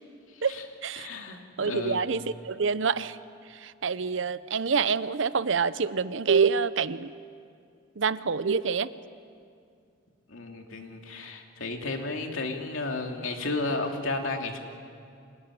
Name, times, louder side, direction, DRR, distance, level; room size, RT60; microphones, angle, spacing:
voice 1, 0.4-1.1 1.6-3.2 3.5-7.1 8.0-8.9, right 5 dB, 70° right, 15 dB, 0.7 m, -27 dB
voice 2, 1.0-2.0 10.3-14.6, left 2 dB, 80° left, 3 dB, 2.7 m, -33 dB
26.0 x 17.5 x 9.8 m, 2.3 s
head